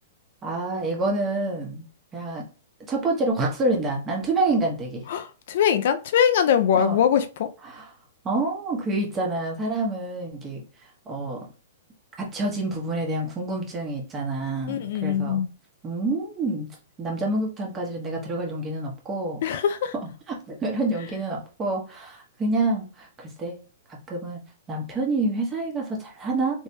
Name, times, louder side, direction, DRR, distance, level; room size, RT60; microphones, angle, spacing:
voice 1, 0.4-1.9 2.1-2.4 2.9-5.0 6.7-7.0 7.7-7.8 8.2-10.6 11.1-11.4 12.2-15.4 15.8-16.7 17.0-19.4 20.3-23.6 23.9-24.4 24.7-26.6, right 2 dB, 20° right, 1.2 m, -27 dB
voice 2, 5.1-7.5 14.7-15.5 19.4-19.9, left 9 dB, 60° left, 0.5 m, -22 dB
3.3 x 3.3 x 2.8 m
hypercardioid pair, 155°, 0 cm